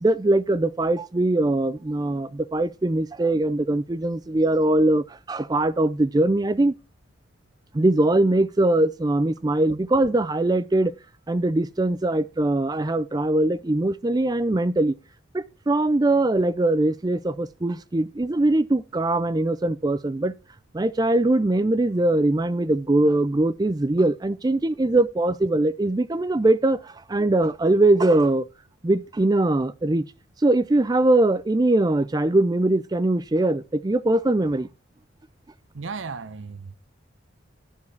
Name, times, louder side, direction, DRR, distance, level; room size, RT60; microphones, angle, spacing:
voice 1, 0.0-6.7 7.7-10.9 11.3-14.9 15.3-20.3 20.7-28.5 28.8-30.1 30.4-34.7, right 2 dB, 20° right, 0.4 m, -21 dB
voice 2, 35.7-36.8, right 4 dB, 90° right, 0.7 m, -35 dB
10.5 x 7.2 x 4.5 m
head